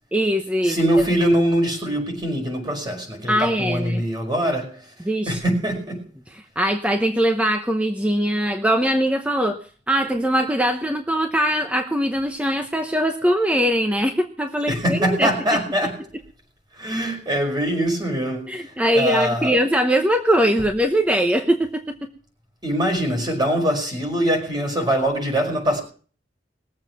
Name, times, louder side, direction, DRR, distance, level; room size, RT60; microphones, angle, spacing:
voice 1, 0.1-0.8 3.3-4.0 5.1-5.4 6.6-9.6 9.9-15.6 18.5-22.1, equal, 10° right, 5 dB, 0.8 m, -21 dB
voice 2, 0.6-6.0 14.7-15.9 16.7-19.6 22.6-25.8, equal, 25° right, 2 dB, 5.1 m, -23 dB
21.0 x 7.6 x 6.0 m, 0.42 s
head